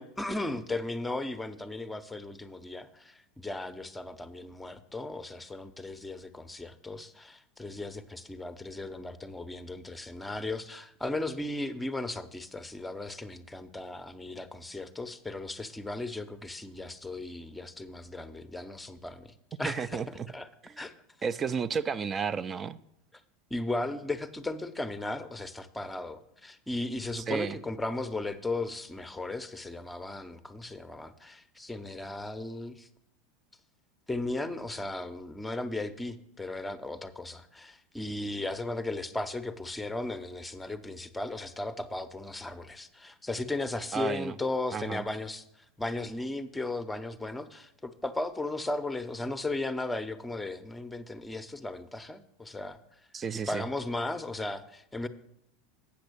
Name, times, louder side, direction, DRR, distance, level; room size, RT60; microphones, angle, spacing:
voice 1, 0.0-20.5 20.8-20.9 23.5-32.9 34.1-45.4 45.8-52.8 53.5-55.1, left 2 dB, 10° left, 0.7 m, -36 dB
voice 2, 19.6-20.3 20.6-20.8 21.2-22.8 27.2-27.6 43.9-44.3 44.7-45.0 53.1-53.6, right 6 dB, 30° right, 0.4 m, -32 dB
8.6 x 6.0 x 6.7 m
hypercardioid pair, 95°, 0 cm